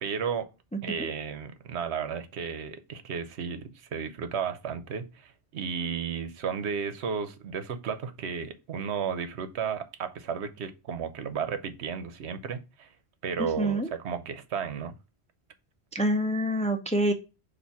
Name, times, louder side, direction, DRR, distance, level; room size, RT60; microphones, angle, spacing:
voice 1, 0.0-0.5 0.8-12.9 13.2-14.9, right 6 dB, 80° right, 1.0 m, -33 dB
voice 2, 13.6-13.9 15.9-17.1, right 1 dB, 10° left, 0.5 m, -26 dB
6.9 x 2.5 x 5.7 m
omnidirectional pair, 1.1 m